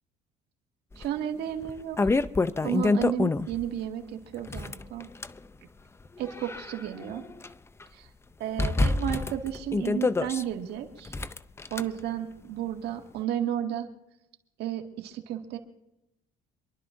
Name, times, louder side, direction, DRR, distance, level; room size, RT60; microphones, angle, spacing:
sound 1, 1.0-1.1 1.6-3.7 4.4-5.4 6.1-7.5 7.8-7.9 8.6-10.4 11.1-11.8, left 3 dB, 15° left, 0.5 m, -27 dB
voice 1, 1.0-2.2 2.6-5.1 6.2-7.2 7.9-8.1 8.4-11.1 11.7-13.9 14.6-15.6, right 10 dB, 80° right, 3 dB, 1.9 m, -33 dB
27.0 x 12.0 x 2.6 m, 0.88 s
cardioid pair, 110°, 17 cm